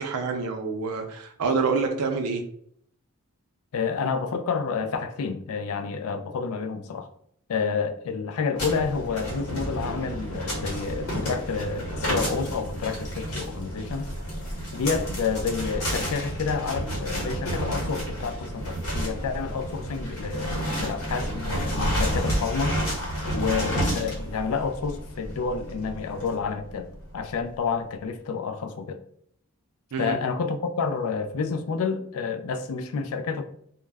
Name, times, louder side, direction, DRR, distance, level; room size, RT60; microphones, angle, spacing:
voice 1, 0.0-2.4 29.9-30.2, right 4 dB, 85° right, 0.5 m, -27 dB
voice 2, 3.7-7.1 7.5-14.1 14.7-22.8 23.3-29.0 30.0-33.4, left 5 dB, 70° left, 0.3 m, -29 dB
sound 1, 8.6-27.3, equal, 90° left, 1.1 m, -30 dB
2.2 x 2.0 x 3.3 m
head